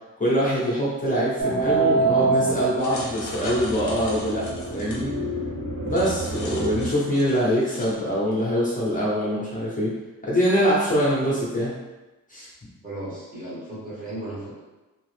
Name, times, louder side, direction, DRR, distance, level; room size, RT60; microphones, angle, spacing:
voice 1, 0.2-5.1 5.8-9.9 10.2-11.7 12.3-12.5, equal, 25° left, -7 dB, 0.8 m, -24 dB
sound 1, 1.4-6.9, right 3 dB, 50° right, 1.1 m, -26 dB
sound 2, 2.8-5.0 5.9-7.9, left 2 dB, 60° left, 0.7 m, -37 dB
voice 2, 12.8-14.6, right 1 dB, 25° right, -8 dB, 1.2 m, -35 dB
2.7 x 2.4 x 3.3 m, 1.1 s
wide cardioid pair, 115°, 32 cm